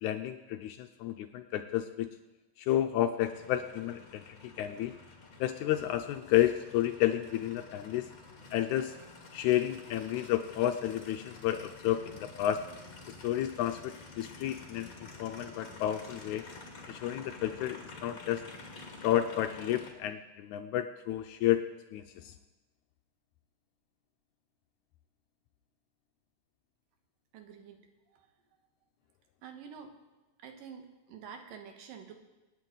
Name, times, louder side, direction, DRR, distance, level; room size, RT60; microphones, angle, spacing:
voice 1, 0.0-2.1 2.6-4.9 5.4-8.1 8.5-9.0 9.3-12.7 13.2-16.4 16.9-18.4 19.0-22.3, left 12 dB, 80° left, 7 dB, 1.7 m, -31 dB
Aircraft, 3.2-19.9, left 3 dB, 35° left, 1.4 m, -50 dB
voice 2, 27.3-27.8 28.1-28.3 29.4-30.0 30.4-32.1, right 7 dB, 85° right, 5 dB, 3.0 m, -48 dB
27.0 x 9.1 x 3.9 m, 1.1 s
omnidirectional pair, 3.9 m